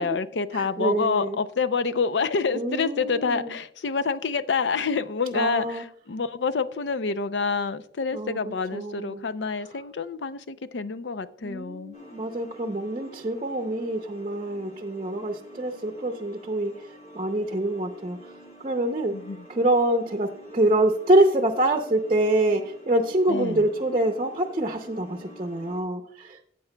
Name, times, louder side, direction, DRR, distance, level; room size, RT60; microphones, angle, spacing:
voice 1, 0.0-12.0 19.1-19.5 23.3-23.7, left 5 dB, 85° left, 12 dB, 0.5 m, -27 dB
voice 2, 0.5-1.4 2.5-3.5 5.3-5.8 8.1-8.4 8.7-9.2 11.4-16.7 17.1-18.3 18.6-19.1 19.5-26.4, right 1 dB, 35° right, 4 dB, 0.6 m, -25 dB
sound 1, 11.9-25.8, right 1 dB, 40° left, 2.3 m, -48 dB
14.5 x 8.4 x 2.2 m, 0.67 s
head